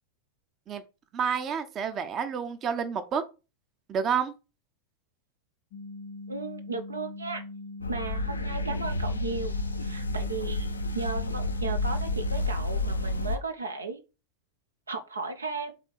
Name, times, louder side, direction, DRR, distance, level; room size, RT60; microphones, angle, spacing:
voice 1, 1.1-3.2 3.9-4.3, right 7 dB, 30° right, 0.8 m, -29 dB
sound 1, 5.7-12.5, left 2 dB, 45° left, 0.9 m, -41 dB
voice 2, 6.3-7.4 7.9-14.0 14.9-15.7, right 4 dB, 75° right, 0.9 m, -35 dB
sound 2, 7.8-13.4, left 2 dB, 80° left, 0.7 m, -30 dB
5.1 x 3.7 x 5.3 m
figure-of-eight pair, 90°, 0 cm